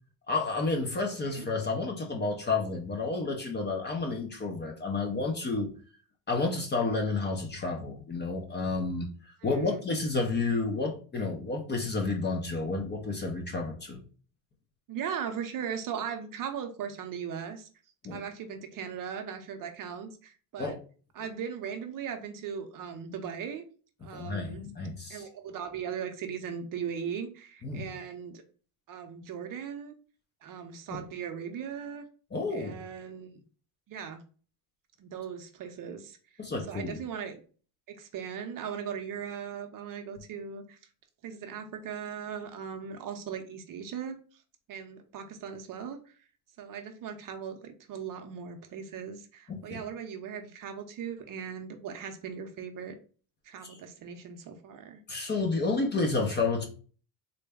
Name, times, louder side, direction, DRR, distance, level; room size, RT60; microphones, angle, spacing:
voice 1, 0.3-5.7 6.3-14.0 18.0-18.2 20.6-20.8 24.1-25.2 27.6-27.8 30.9-31.0 32.3-32.8 36.4-37.0 49.5-49.8 53.6-53.8 55.1-56.7, left 3 dB, 25° left, 3 dB, 0.6 m, -31 dB
voice 2, 9.4-9.8 14.9-17.7 18.1-20.8 21.1-23.6 24.0-24.6 25.1-28.4 28.9-29.9 30.4-32.0 32.5-33.4 33.9-34.2 35.0-36.4 36.7-37.4 37.9-40.8 41.2-44.4 44.7-46.2 46.6-53.0 53.4-55.0, right 7 dB, 45° right, 6 dB, 0.6 m, -38 dB
3.8 x 2.2 x 3.4 m, 0.39 s
cardioid pair, 140°, 44 cm